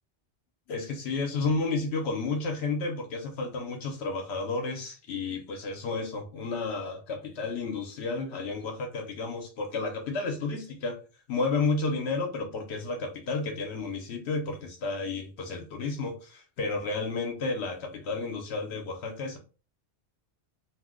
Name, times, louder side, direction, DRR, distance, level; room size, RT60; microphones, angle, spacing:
voice 1, 0.7-11.0 11.3-19.4, left 3 dB, 70° left, 4 dB, 0.9 m, -32 dB
2.7 x 2.1 x 3.6 m, 0.35 s
omnidirectional pair, 1.2 m